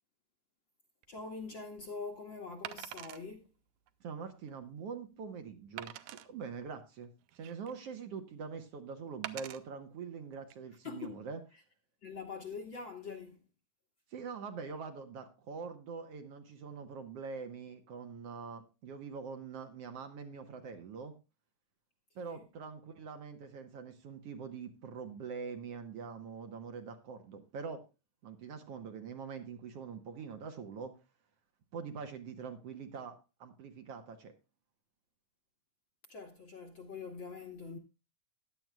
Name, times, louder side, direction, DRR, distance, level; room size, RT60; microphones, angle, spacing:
Wood, 1.0-1.2 2.6-3.2 3.9-4.0 4.5-4.6 5.8-6.3 7.0-7.8 9.2-9.6 10.3-10.5, right 13 dB, 80° right, 2.0 m, -44 dB
voice 1, 1.1-3.5 10.8-11.2 11.5-11.6 12.0-13.4 22.2-22.4 36.1-37.8, left 4 dB, 55° left, 1.5 m, -44 dB
voice 2, 4.0-11.4 14.1-21.1 22.2-27.8 28.2-30.9 31.7-34.3, right 5 dB, 60° right, 1.9 m, -44 dB
15.5 x 10.5 x 2.3 m
omnidirectional pair, 3.4 m